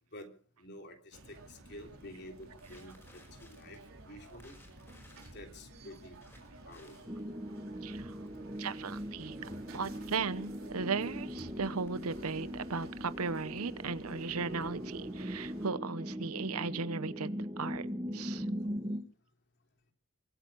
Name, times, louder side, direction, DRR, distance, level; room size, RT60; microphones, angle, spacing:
voice 1, 0.6-3.2 3.5-3.8 4.1-4.5 5.3-6.2 6.7-7.2, left 1 dB, 50° left, 3 dB, 3.4 m, -50 dB
sound 1, 1.1-15.7, right 2 dB, 70° right, 4.3 m, -53 dB
Crackle, 1.6-15.8, left 1 dB, 10° left, 5.3 m, -64 dB
sound 2, 7.1-19.0, equal, 20° right, 1.5 m, -40 dB
voice 2, 7.8-8.2 8.6-9.4 9.7-17.9 18.1-18.5, right 4 dB, 90° right, 16 dB, 0.9 m, -36 dB
23.5 x 9.1 x 6.2 m, 0.43 s
head